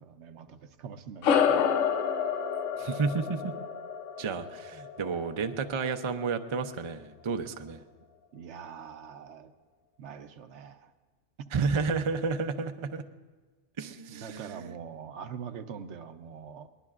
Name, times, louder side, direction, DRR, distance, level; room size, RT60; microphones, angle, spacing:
voice 1, 0.0-1.9 8.3-9.5 10.0-10.9 14.1-16.7, right 7 dB, 70° right, 9 dB, 1.0 m, -43 dB
sound 1, 1.2-6.0, left 7 dB, 85° left, 1.0 m, -29 dB
voice 2, 2.8-3.5 4.2-7.8 11.5-13.0 13.8-14.7, right 4 dB, 40° right, 7 dB, 0.4 m, -31 dB
22.0 x 19.5 x 2.4 m, 1.4 s
omnidirectional pair, 1.2 m